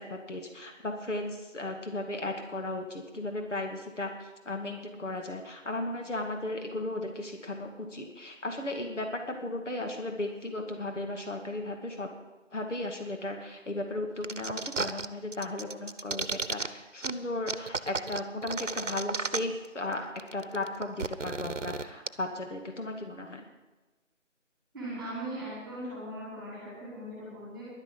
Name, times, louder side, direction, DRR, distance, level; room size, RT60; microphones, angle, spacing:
voice 1, 0.0-12.1 12.5-20.1 20.3-23.4, left 2 dB, 65° left, 3 dB, 2.3 m, -35 dB
sound 1, 14.2-15.1 15.3-16.7 17.0-17.1 17.5-19.7 19.9-20.0 20.2-22.1, right 4 dB, 70° right, 1.0 m, -33 dB
voice 2, 24.7-27.7, right 1 dB, ahead, -7 dB, 4.8 m, -39 dB
11.5 x 10.0 x 8.6 m, 1.2 s
figure-of-eight pair, 165°, 39 cm